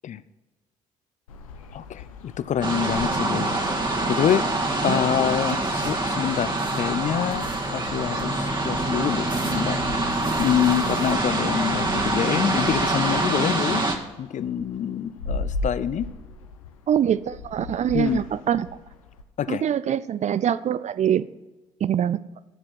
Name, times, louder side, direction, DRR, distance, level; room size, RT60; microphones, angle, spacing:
sound 1, 1.3-19.2, left 2 dB, 85° left, 0.7 m, -39 dB
voice 1, 1.7-3.5 4.1-4.5 4.8-13.8 14.2-16.1 17.9-18.2 19.4-19.7, left 9 dB, 45° left, 16 dB, 0.5 m, -26 dB
sound 2, 2.6-13.9, right 2 dB, 25° right, 1.9 m, -25 dB
voice 2, 16.9-18.7 19.5-21.3 21.8-22.2, right 9 dB, 45° right, 17 dB, 0.5 m, -24 dB
9.9 x 7.5 x 6.1 m, 1.1 s
figure-of-eight pair, 45°, 17 cm